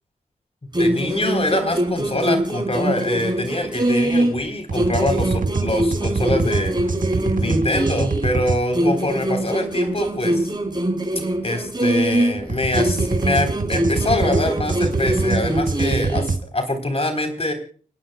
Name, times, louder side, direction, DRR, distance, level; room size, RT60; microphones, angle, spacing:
sound 1, 0.7-4.4 4.7-8.4 8.7-12.4 12.7-16.4, right 1 dB, 30° right, 7.0 m, -23 dB
voice 1, 0.8-6.8 7.3-10.5 11.4-17.5, left 1 dB, 45° left, 6 dB, 3.9 m, -24 dB
sound 2, 4.7-8.6 12.5-16.4, right 4 dB, 70° right, 1.4 m, -25 dB
30.0 x 11.0 x 2.3 m, 0.42 s
cardioid pair, 45°, 14 cm